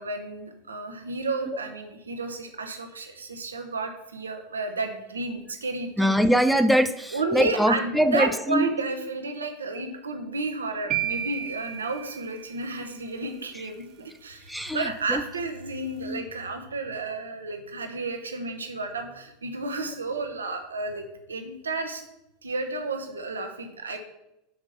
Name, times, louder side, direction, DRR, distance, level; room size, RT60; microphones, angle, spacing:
voice 1, 0.0-6.1 7.1-22.0 22.4-24.0, right 3 dB, 90° right, 6 dB, 1.0 m, -32 dB
voice 2, 6.0-8.7 14.5-15.2 16.0-16.2, equal, ahead, 9 dB, 0.5 m, -23 dB
sound 1, 10.9-13.0, right 11 dB, 50° right, 0.6 m, -32 dB
5.9 x 5.1 x 5.6 m, 0.88 s
hypercardioid pair, 90°, 0 cm